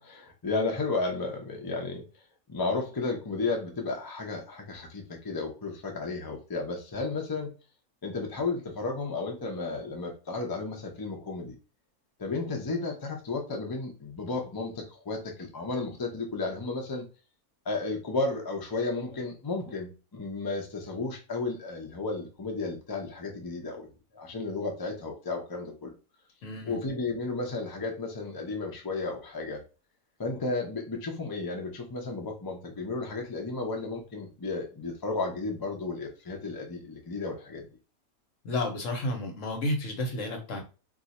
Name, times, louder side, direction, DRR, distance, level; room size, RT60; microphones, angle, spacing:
voice 1, 0.0-2.1 2.5-7.5 8.0-11.5 12.2-17.1 17.7-25.9 26.6-29.6 30.2-37.7, left 3 dB, 35° left, 1 dB, 0.3 m, -33 dB
voice 2, 26.4-26.8 38.4-40.6, left 1 dB, 60° left, 3 dB, 1.2 m, -31 dB
2.7 x 2.4 x 4.1 m, 0.32 s
omnidirectional pair, 1.5 m